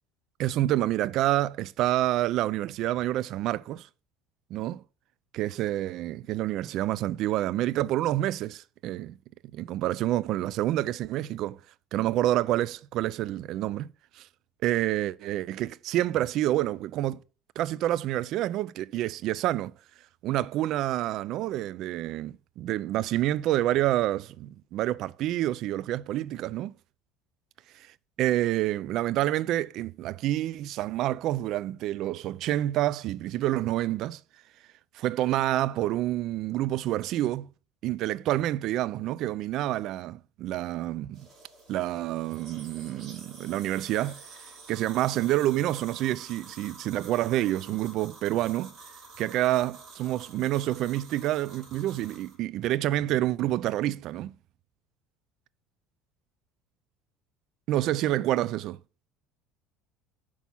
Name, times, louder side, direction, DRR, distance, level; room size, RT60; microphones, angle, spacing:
voice 1, 0.4-3.9 4.5-4.8 5.3-9.2 9.5-11.6 11.9-13.9 14.2-14.3 14.6-17.2 17.6-19.7 20.2-26.7 28.2-34.2 34.9-37.5 37.8-41.3 41.7-44.2 44.7-48.7 49.2-54.4 57.7-58.8, right 14 dB, 60° right, 0.4 m, -28 dB
sound 1, 41.1-52.3, right 4 dB, 40° right, 5.2 m, -49 dB
7.2 x 6.2 x 5.5 m
supercardioid pair, 90°, 0 cm